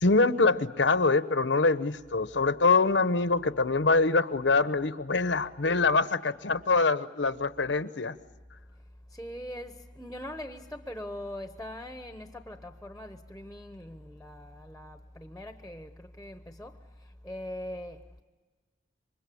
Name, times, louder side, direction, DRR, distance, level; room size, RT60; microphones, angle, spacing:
voice 1, 0.0-8.1, left 3 dB, 75° left, 1.0 m, -24 dB
voice 2, 8.7-18.2, left 1 dB, ahead, 1.0 m, -42 dB
28.0 x 24.5 x 8.6 m
head